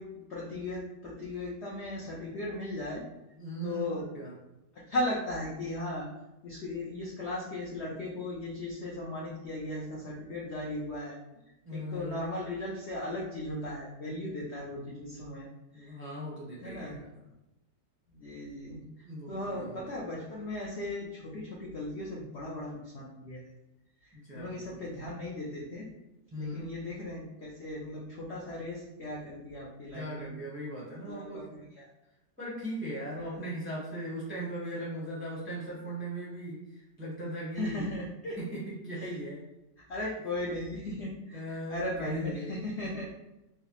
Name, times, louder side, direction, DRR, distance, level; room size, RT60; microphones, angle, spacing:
voice 1, 0.0-3.0 3.6-4.1 4.9-6.1 6.4-11.2 11.7-15.5 15.7-16.0 16.6-17.0 18.1-18.8 19.3-23.4 24.0-25.9 26.4-30.3 31.0-31.4 31.7-31.9 33.2-33.4 37.5-38.4 39.0-39.1 39.9-43.1, left 1 dB, 65° left, -4 dB, 0.6 m, -37 dB
voice 2, 3.4-4.3 11.6-12.3 15.7-17.1 19.0-19.8 24.1-24.8 26.3-26.7 29.9-31.5 32.4-37.9 38.4-39.4 41.3-42.6, right 1 dB, 10° right, -7 dB, 0.6 m, -38 dB
4.7 x 2.0 x 2.9 m, 0.93 s
omnidirectional pair, 1.9 m